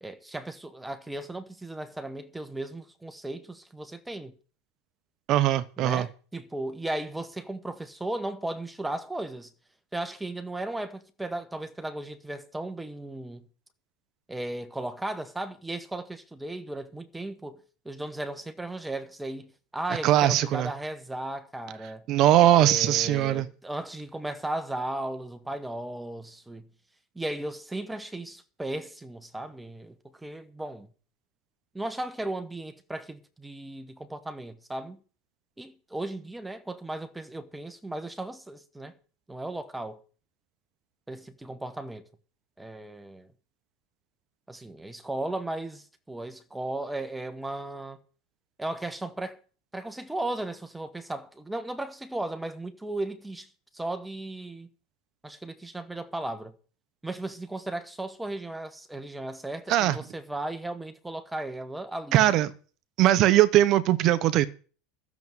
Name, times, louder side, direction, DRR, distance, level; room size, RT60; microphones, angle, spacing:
voice 1, 0.0-4.3 5.8-9.5 9.9-13.5 14.3-17.6 17.8-22.0 22.6-26.7 27.1-30.0 30.2-30.9 31.7-35.0 35.6-38.9 39.3-40.0 41.1-42.1 42.6-43.3 44.5-48.0 48.6-49.4 49.7-53.5 53.7-54.7 55.2-56.5 57.0-62.4, right 1 dB, 5° right, 1.0 m, -36 dB
voice 2, 5.3-6.1 20.0-20.7 22.1-23.5 59.7-60.0 62.1-62.5 63.0-64.5, right 13 dB, 35° right, 0.9 m, -20 dB
13.0 x 7.1 x 7.9 m
supercardioid pair, 170°, 0 cm